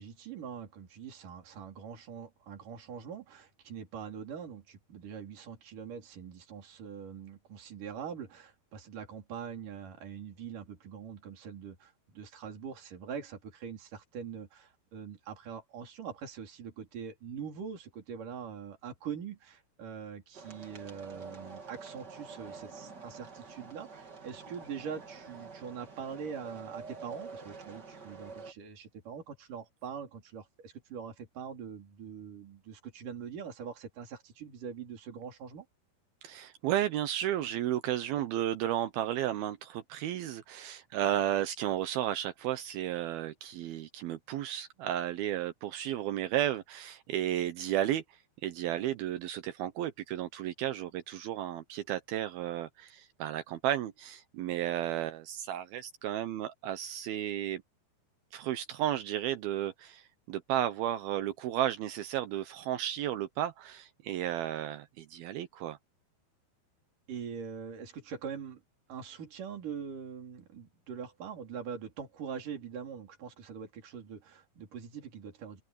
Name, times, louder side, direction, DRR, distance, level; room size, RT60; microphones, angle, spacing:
voice 1, 0.0-35.7 67.1-68.6 68.9-75.6, right 7 dB, 55° right, 5.2 m, -43 dB
sound 1, 20.3-28.5, right 4 dB, 30° right, 2.3 m, -47 dB
voice 2, 36.2-48.0 48.4-57.6 58.3-65.8, right 12 dB, 75° right, 2.6 m, -33 dB
omnidirectional pair, 4.7 m